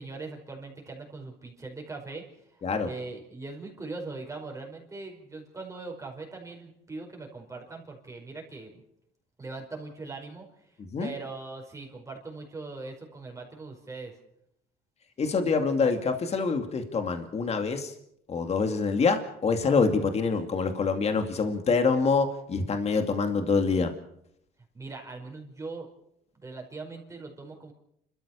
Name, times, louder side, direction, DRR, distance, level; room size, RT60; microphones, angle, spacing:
voice 1, 0.0-2.2 2.5-8.8 9.4-10.5 11.0-14.1 24.7-25.9 26.3-27.7, right 3 dB, 20° right, 1 dB, 5.0 m, -40 dB
voice 2, 15.2-17.9 18.3-23.9, left 4 dB, 40° left, 6 dB, 2.4 m, -26 dB
29.5 x 14.0 x 6.9 m, 0.76 s
cardioid pair, 110°, 17 cm